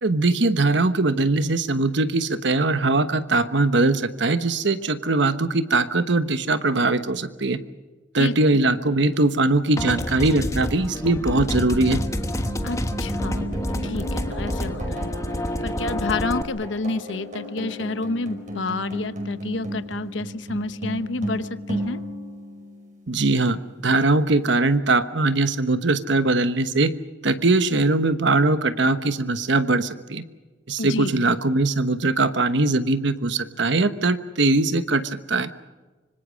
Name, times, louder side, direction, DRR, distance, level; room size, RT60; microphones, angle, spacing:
voice 1, 0.0-7.6 8.1-12.0 23.1-26.9 27.2-30.2 30.7-35.5, right 2 dB, 65° right, 11 dB, 1.2 m, -21 dB
voice 2, 8.2-8.6 12.6-13.6 13.8-22.0 30.8-31.2, left 3 dB, 75° left, 12 dB, 1.0 m, -30 dB
sound 1, 9.1-23.3, equal, 40° right, 5.3 m, -35 dB
sound 2, 9.8-16.4, left 1 dB, 15° left, 1.3 m, -28 dB
25.5 x 25.0 x 6.4 m, 1.3 s
head